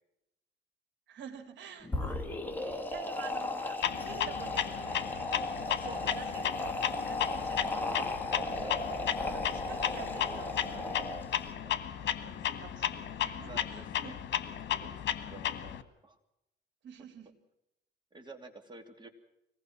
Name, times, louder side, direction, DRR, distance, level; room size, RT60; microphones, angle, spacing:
voice 1, 1.1-2.2 2.6-5.4 5.8-6.6 6.9-8.1 9.3-11.1 12.0-14.3 16.8-17.3, right 8 dB, 75° right, 6 dB, 3.3 m, -49 dB
sound 1, 1.8-11.5, left 2 dB, 10° left, 2.3 m, -36 dB
Clock, 3.8-15.8, left 10 dB, 70° left, 1.6 m, -34 dB
voice 2, 5.6-6.2 8.6-8.8 11.6-11.9 13.4-14.2 14.7-16.2 18.1-19.1, right 3 dB, 25° right, 5 dB, 3.0 m, -49 dB
25.5 x 19.0 x 6.1 m, 0.84 s
cardioid pair, 115°, 19 cm